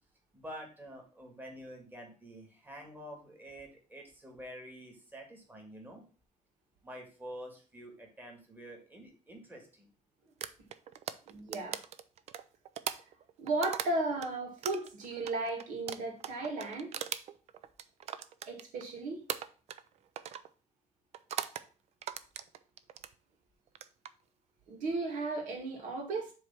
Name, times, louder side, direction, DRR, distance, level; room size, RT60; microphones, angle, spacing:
voice 1, 0.3-6.0 6.8-9.9, equal, 15° right, 1.9 m, -48 dB
sound 1, 10.4-14.3 14.6-18.9 19.3-19.9 20.2-20.5 21.1-21.7 22.0-23.1 23.7-24.1, right 9 dB, 60° right, 0.5 m, -40 dB
voice 2, 11.3-11.8 13.4-16.9 18.5-19.2 24.7-26.3, right 2 dB, 85° right, 2.0 m, -35 dB
7.6 x 3.3 x 5.7 m
cardioid pair, 140°, 13 cm